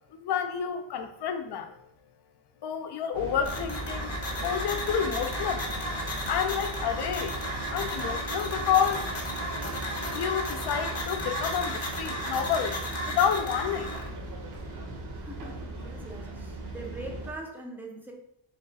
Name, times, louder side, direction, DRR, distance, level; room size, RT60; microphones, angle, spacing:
voice 1, 0.2-1.7 2.6-4.1 4.4-5.7 6.3-7.4 7.7-9.0 10.1-13.9, left 8 dB, 60° left, 7 dB, 0.5 m, -29 dB
sound 1, 3.1-17.3, right 2 dB, 55° right, 0.9 m, -38 dB
sound 2, 3.4-14.1, equal, 30° left, 0.8 m, -34 dB
voice 2, 15.1-18.1, right 2 dB, 5° right, 0 dB, 0.5 m, -42 dB
3.3 x 2.3 x 3.9 m, 0.78 s
cardioid pair, 125°, 47 cm